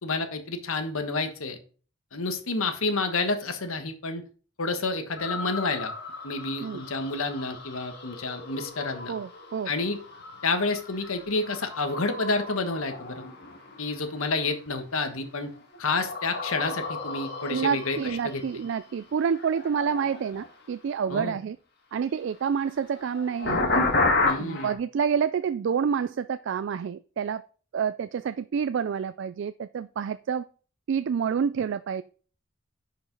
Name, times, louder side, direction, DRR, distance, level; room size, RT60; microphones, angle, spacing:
voice 1, 0.0-1.6 2.1-4.2 4.6-5.9 6.2-9.1 9.6-10.0 10.4-13.3 13.8-15.5 15.8-18.4 21.1-21.4 24.2-24.7, left 3 dB, 80° left, 1.3 m, -29 dB
sound 1, 5.2-14.7 15.2-20.7 22.5-24.7, left 3 dB, 50° left, 1.7 m, -33 dB
voice 2, 9.1-9.7 17.5-21.6 21.9-23.8 24.4-27.4 27.7-30.4 30.9-32.0, right 7 dB, 60° right, 0.3 m, -28 dB
10.5 x 5.2 x 3.9 m
head